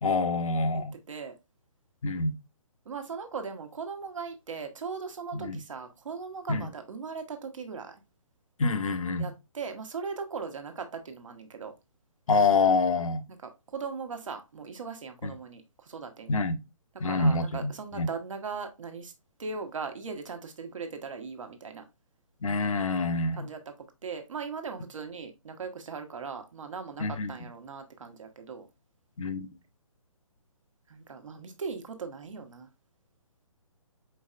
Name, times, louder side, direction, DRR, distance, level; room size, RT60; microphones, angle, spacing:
voice 1, 0.0-0.9 2.0-2.3 5.3-5.6 6.5-6.7 8.6-9.3 12.3-13.2 15.2-15.4 16.3-16.6 17.0-18.1 22.4-23.5 27.0-27.3 29.2-29.5, left 3 dB, 70° left, 0.7 m, -26 dB
voice 2, 2.8-8.0 9.2-11.7 13.7-16.3 17.0-19.1 19.4-21.8 23.4-23.6 24.0-28.7 30.9-32.7, right 5 dB, 65° right, 1.1 m, -39 dB
4.5 x 4.4 x 2.4 m
figure-of-eight pair, 140°, 18 cm